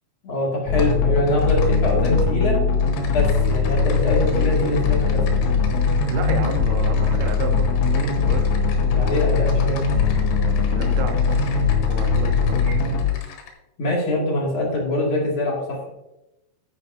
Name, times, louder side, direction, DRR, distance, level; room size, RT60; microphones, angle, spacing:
voice 1, 0.2-2.6 3.1-5.3 8.9-9.8 13.8-15.9, left 1 dB, 40° left, -3 dB, 2.1 m, -24 dB
sound 1, 0.7-13.1, left 5 dB, 70° left, 2.9 m, -20 dB
Typing, 0.8-1.0 1.3-2.2 2.7-13.5, left 6 dB, 85° left, 3.8 m, -41 dB
voice 2, 6.1-8.4 10.7-11.6 11.9-12.8, right 5 dB, 85° right, 5 dB, 3.5 m, -32 dB
10.5 x 9.8 x 2.7 m, 0.93 s
omnidirectional pair, 5.4 m